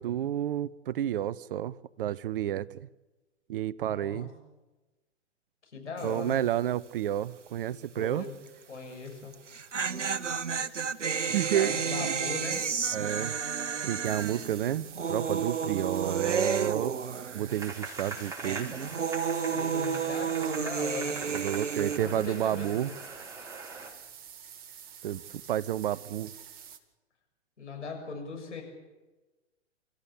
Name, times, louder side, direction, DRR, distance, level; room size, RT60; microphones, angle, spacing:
voice 1, 0.0-2.9 3.5-4.3 6.0-8.3 11.3-12.1 12.9-13.4 13.8-16.9 17.3-18.7 21.3-22.9 25.0-25.2 25.5-26.3, right 11 dB, 50° right, 0.7 m, -30 dB
voice 2, 3.8-4.3 5.6-6.4 8.0-8.3 8.7-9.3 11.3-12.6 19.5-21.2 22.0-23.0 27.6-28.6, left 4 dB, 75° left, 7.0 m, -40 dB
sound 1, 6.0-6.3 6.6-6.7 9.3-17.7 18.0-22.0, right 6 dB, 80° right, 1.0 m, -31 dB
sound 2, 14.0-26.8, right 8 dB, 25° right, 1.9 m, -48 dB
sound 3, 17.5-23.9, right 3 dB, 10° right, 4.3 m, -42 dB
28.0 x 14.5 x 8.4 m
figure-of-eight pair, 115°, 36 cm